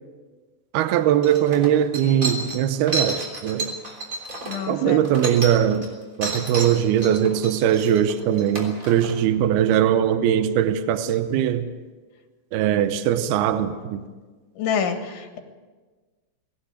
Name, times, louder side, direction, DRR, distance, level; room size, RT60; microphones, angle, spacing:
voice 1, 0.7-3.7 4.7-5.9 6.2-11.7 12.5-14.0, right 10 dB, 75° right, 11 dB, 2.4 m, -21 dB
sound 1, 0.8-0.9 1.2-5.9 6.2-9.1, right 2 dB, 20° right, 3.2 m, -31 dB
voice 2, 4.4-5.1 6.3-6.4 14.6-15.4, left 7 dB, 85° left, 6 dB, 4.1 m, -27 dB
20.5 x 17.5 x 8.2 m, 1.4 s
omnidirectional pair, 5.2 m